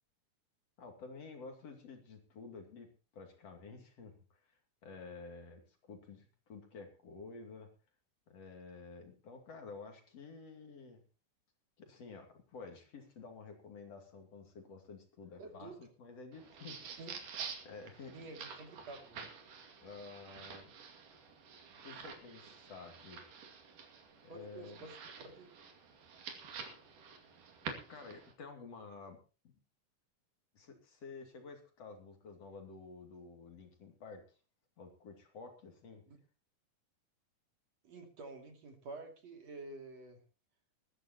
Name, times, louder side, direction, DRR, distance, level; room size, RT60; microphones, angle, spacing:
voice 1, 0.8-7.7 8.3-11.0 11.8-17.0 17.7-18.2 19.8-20.7 21.8-23.2 24.2-24.8 27.9-29.5 30.5-34.4 34.8-36.0, left 4 dB, 50° left, 4 dB, 3.6 m, -51 dB
voice 2, 15.4-15.8 17.0-17.2 18.1-19.3 24.3-25.0 25.2-25.5 36.1-36.2 37.8-40.2, right 3 dB, 55° right, 4 dB, 3.8 m, -49 dB
sound 1, 16.3-28.3, right 6 dB, 75° right, 4.0 m, -49 dB
20.0 x 14.5 x 3.0 m, 0.34 s
omnidirectional pair, 3.7 m